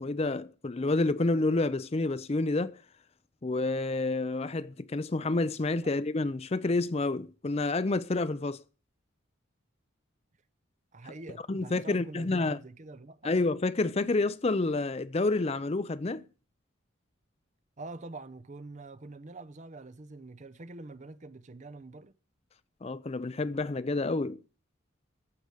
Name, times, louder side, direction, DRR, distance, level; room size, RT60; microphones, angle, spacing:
voice 1, 0.0-2.8 3.4-8.6 11.5-12.6 13.2-16.3 22.8-24.4, left 2 dB, 30° left, 0.5 m, -29 dB
voice 2, 10.9-13.4 17.8-22.1, right 2 dB, 35° right, 0.6 m, -45 dB
14.5 x 4.9 x 8.3 m
head